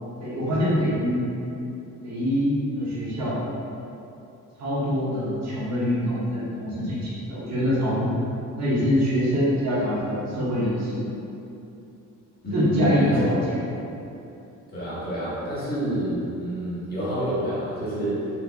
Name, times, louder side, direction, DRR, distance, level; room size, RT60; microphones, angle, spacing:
voice 1, 0.2-1.2 2.0-3.4 4.6-8.2 8.6-11.0 12.5-13.4, equal, 60° right, -8 dB, 1.3 m, -24 dB
voice 2, 12.4-13.4 14.7-18.3, equal, 30° left, -10 dB, 1.5 m, -28 dB
4.5 x 2.7 x 3.5 m, 2.8 s
cardioid pair, 135°, 31 cm